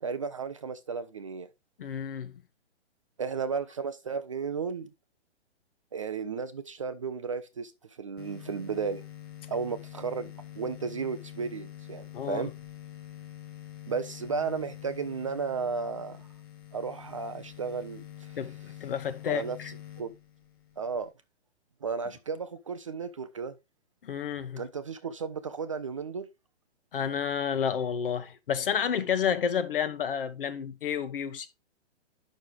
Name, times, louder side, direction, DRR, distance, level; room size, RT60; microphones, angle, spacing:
voice 1, 0.0-1.5 3.2-4.9 5.9-9.0 9.5-12.5 13.9-16.3 16.7-18.4 19.3-20.1 20.8-21.1 21.8-23.6 24.6-26.3, right 5 dB, 30° right, 0.5 m, -34 dB
voice 2, 1.8-2.4 12.1-12.5 18.4-19.7 24.0-24.6 26.9-31.5, left 8 dB, 50° left, 1.2 m, -30 dB
sound 1, 8.2-21.1, left 13 dB, 20° left, 0.8 m, -46 dB
9.3 x 6.3 x 3.3 m
hypercardioid pair, 165°, 35 cm